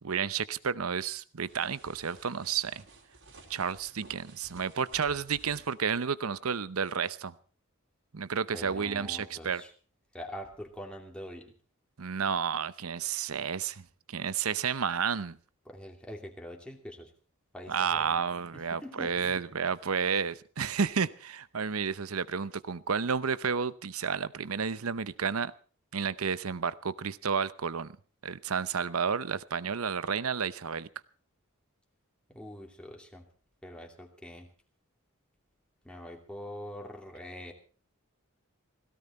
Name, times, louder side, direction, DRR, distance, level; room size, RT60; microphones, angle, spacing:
voice 1, 0.0-2.8 3.5-7.3 8.1-9.6 12.0-15.4 17.7-25.5 25.9-27.9 28.2-30.9, right 6 dB, 85° right, 0.8 m, -31 dB
sound 1, 1.5-5.8, right 2 dB, 65° right, 4.1 m, -55 dB
voice 2, 8.5-9.7 10.1-11.5 15.6-17.1 17.5-18.2 18.5-19.4 32.3-33.3 33.6-34.5 35.8-37.5, equal, 5° left, 2.6 m, -44 dB
17.5 x 16.5 x 4.3 m
head